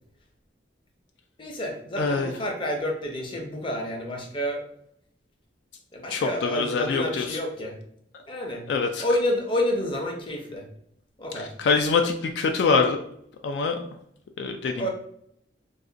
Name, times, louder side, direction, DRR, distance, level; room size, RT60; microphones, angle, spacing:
voice 1, 1.4-4.6 5.9-7.8 8.3-8.6 9.0-10.7 11.2-11.5 14.8-14.9, left 1 dB, 30° left, 0 dB, 0.6 m, -29 dB
voice 2, 2.0-2.3 6.1-7.4 8.7-9.0 11.4-13.0 13.4-13.8 14.4-14.9, left 4 dB, 70° left, 5 dB, 0.3 m, -24 dB
2.4 x 2.4 x 3.8 m, 0.71 s
head